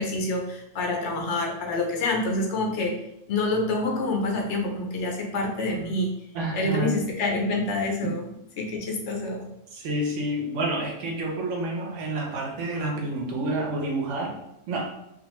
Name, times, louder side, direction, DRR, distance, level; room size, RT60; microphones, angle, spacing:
voice 1, 0.0-2.9 3.3-6.1 6.5-9.5, left 2 dB, 75° left, 1 dB, 0.9 m, -27 dB
voice 2, 6.3-7.0 9.7-14.3 14.7-14.9, right 2 dB, 85° right, 0 dB, 1.0 m, -29 dB
2.5 x 2.3 x 2.9 m, 0.82 s
omnidirectional pair, 1.2 m